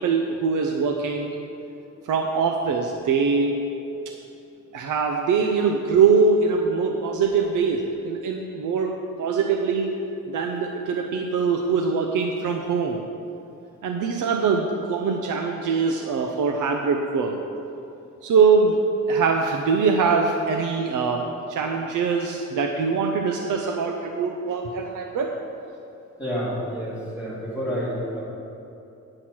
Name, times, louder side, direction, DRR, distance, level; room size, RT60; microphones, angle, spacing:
voice 1, 0.0-1.4 2.1-3.5 4.1-4.2 4.7-9.9 10.3-13.0 13.8-17.4 18.2-18.8 19.1-25.4, right 5 dB, 80° right, 3 dB, 0.7 m, -23 dB
voice 2, 26.2-28.2, equal, 5° right, -8 dB, 2.4 m, -29 dB
9.9 x 6.1 x 5.9 m, 2.8 s
wide cardioid pair, 170°, 31 cm